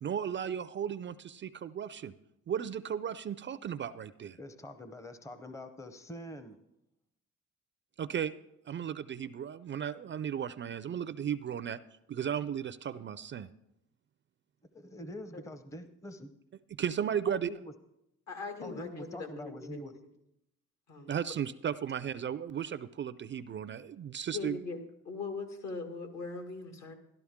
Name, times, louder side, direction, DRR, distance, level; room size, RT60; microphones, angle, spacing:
voice 1, 0.0-2.1 2.5-4.4 8.0-8.3 8.7-11.8 12.1-13.5 16.8-17.5 21.1-24.6, right 8 dB, 40° right, 14 dB, 0.4 m, -35 dB
voice 2, 4.4-6.6 14.7-16.4 17.3-17.7 18.6-19.9, equal, 10° left, 9 dB, 0.7 m, -45 dB
voice 3, 18.3-20.1 20.9-21.2 24.3-24.8 25.1-26.9, left 4 dB, 60° left, 5 dB, 2.0 m, -40 dB
13.0 x 12.0 x 3.6 m, 0.84 s
cardioid pair, 95°, 30 cm